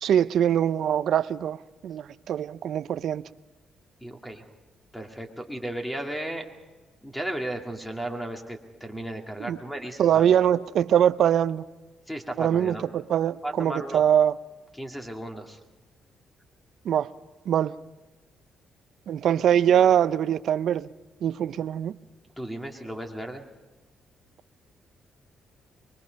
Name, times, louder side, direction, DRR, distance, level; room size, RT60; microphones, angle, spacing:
voice 1, 0.0-3.3 9.4-9.6 10.0-11.6 12.4-14.4 16.8-17.1 17.5-17.8 19.1-20.9 21.2-22.0, right 9 dB, 70° right, 0.6 m, -23 dB
voice 2, 4.0-4.5 4.9-6.4 7.0-10.7 12.1-12.8 13.4-14.0 14.7-15.6 22.4-23.4, right 1 dB, 5° left, 2.4 m, -35 dB
24.0 x 22.0 x 5.3 m
cardioid pair, 90°, 0 cm